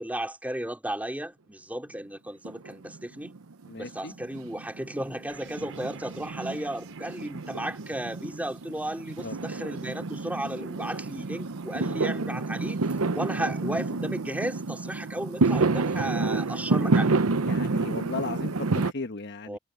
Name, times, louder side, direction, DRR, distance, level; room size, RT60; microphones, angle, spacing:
voice 1, 0.0-3.3 3.8-12.8 13.1-17.2 19.5-19.6, right 1 dB, 5° right, 3.7 m, -34 dB
Fireworks, 2.4-3.4 3.6-18.9, right 3 dB, 85° right, 0.8 m, -29 dB
voice 2, 3.7-4.1 9.2-9.4 17.4-19.6, left 3 dB, 55° left, 1.3 m, -36 dB
sound 1, 5.3-12.2, right 7 dB, 70° right, 6.5 m, -54 dB
head